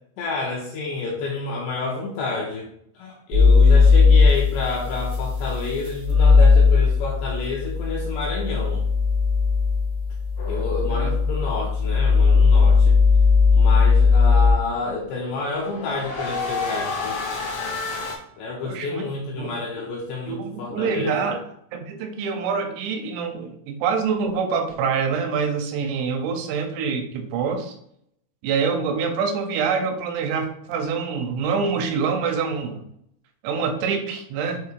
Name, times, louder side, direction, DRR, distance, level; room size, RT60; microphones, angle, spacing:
voice 1, 0.2-2.7 2.9-8.9 10.5-13.0 13.5-17.2 18.4-21.3, left 3 dB, 85° left, -2 dB, 2.5 m, -29 dB
sound 1, 3.3-14.5, left 4 dB, 65° right, 1.0 m, -17 dB
sound 2, 10.4-11.3 15.0-18.2, left 4 dB, 65° left, 1.4 m, -31 dB
voice 2, 18.6-19.1 19.4-19.5 20.3-21.4 21.7-27.7 28.4-32.8 33.4-34.6, right 5 dB, 85° right, 4 dB, 3.6 m, -25 dB
7.9 x 2.8 x 4.6 m, 0.71 s
omnidirectional pair, 6.0 m